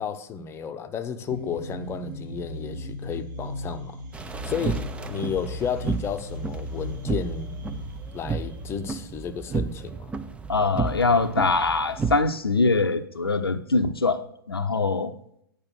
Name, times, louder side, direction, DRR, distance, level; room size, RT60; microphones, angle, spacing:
voice 1, 0.0-4.0 4.4-7.6 8.1-10.1, left 7 dB, 20° left, 0.7 m, -33 dB
sound 1, 1.3-9.8, left 1 dB, 55° right, 1.7 m, -37 dB
sound 2, 4.1-12.2, right 4 dB, 10° right, 0.5 m, -32 dB
voice 2, 10.5-15.1, left 3 dB, 85° left, 0.6 m, -23 dB
8.8 x 5.0 x 6.2 m
figure-of-eight pair, 105°, 12 cm